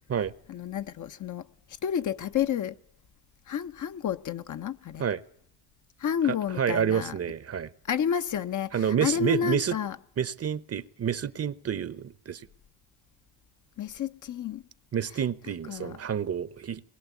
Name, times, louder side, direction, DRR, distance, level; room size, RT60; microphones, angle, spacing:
voice 1, 0.5-1.5 1.8-2.8 3.5-5.0 6.0-7.2 7.9-10.0 13.8-14.6 15.7-16.0, left 9 dB, 45° left, 1.0 m, -30 dB
voice 2, 6.6-7.7 8.7-9.8 10.2-12.5 14.9-16.8, right 8 dB, 35° right, 0.9 m, -29 dB
24.5 x 21.0 x 8.4 m
supercardioid pair, 75°, 42 cm